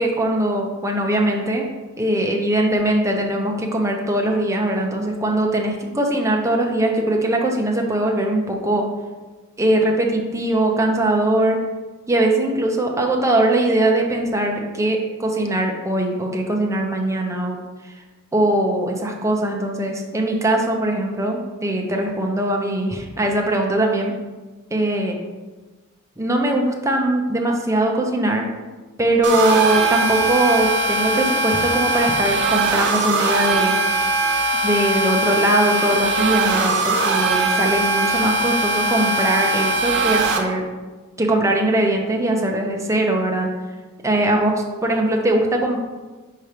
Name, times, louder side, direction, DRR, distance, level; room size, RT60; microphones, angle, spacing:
voice 1, 0.0-1.7 2.0-8.9 9.6-11.6 12.1-17.6 18.3-24.1 24.7-25.2 26.2-28.5 29.0-33.7 34.6-40.6 41.2-43.5 44.0-44.5 44.8-45.8, right 1 dB, 15° right, 1 dB, 0.8 m, -21 dB
sound 1, 29.2-40.4, right 2 dB, 55° right, 0.9 m, -20 dB
5.7 x 4.4 x 5.0 m, 1.3 s
head